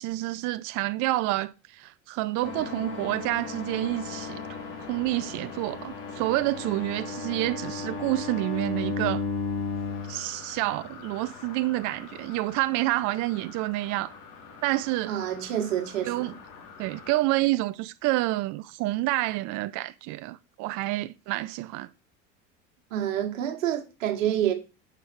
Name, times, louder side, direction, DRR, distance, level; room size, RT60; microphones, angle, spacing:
voice 1, 0.0-4.4 4.9-9.2 10.1-14.1 14.6-15.1 16.0-16.3 16.8-21.9, right 18 dB, 50° right, 0.5 m, -28 dB
sound 1, 2.4-17.1, left 5 dB, 60° left, 2.2 m, -37 dB
voice 2, 15.1-16.4 22.9-24.5, right 10 dB, 85° right, 1.5 m, -28 dB
7.1 x 5.0 x 4.4 m
hypercardioid pair, 85°, 38 cm